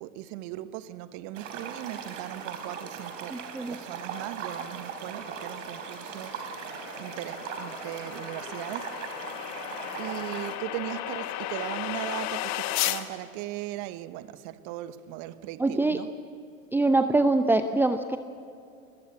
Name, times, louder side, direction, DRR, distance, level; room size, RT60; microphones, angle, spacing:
voice 1, 0.0-9.1 10.0-16.1, right 14 dB, 45° right, 1.2 m, -38 dB
sound 1, 1.3-10.6, right 6 dB, 60° right, 3.9 m, -39 dB
voice 2, 3.3-3.7 15.6-16.0 16.7-18.2, right 2 dB, 5° right, 0.7 m, -24 dB
sound 2, 4.4-13.0, left 14 dB, 40° left, 1.5 m, -35 dB
21.5 x 21.0 x 8.6 m
figure-of-eight pair, 95°, 42 cm